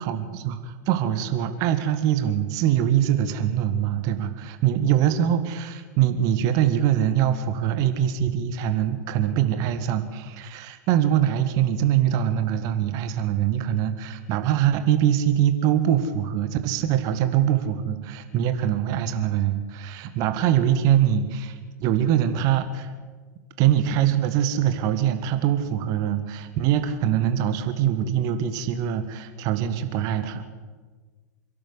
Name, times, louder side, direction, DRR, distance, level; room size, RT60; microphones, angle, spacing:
voice 1, 0.0-22.9 23.6-30.4, right 10 dB, 40° right, 9 dB, 1.6 m, -23 dB
27.0 x 12.0 x 8.1 m, 1.4 s
figure-of-eight pair, 95°, 10 cm